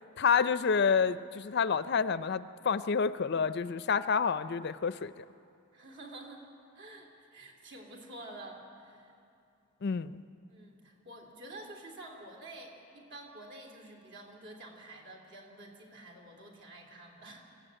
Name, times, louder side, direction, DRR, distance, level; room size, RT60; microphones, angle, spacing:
voice 1, 0.2-5.1 9.8-10.2, left 6 dB, 45° left, 14 dB, 0.4 m, -28 dB
voice 2, 5.7-6.5 6.7-9.1 10.5-17.5, right 1 dB, 50° right, 1 dB, 3.1 m, -49 dB
25.0 x 15.0 x 8.9 m, 2.5 s
head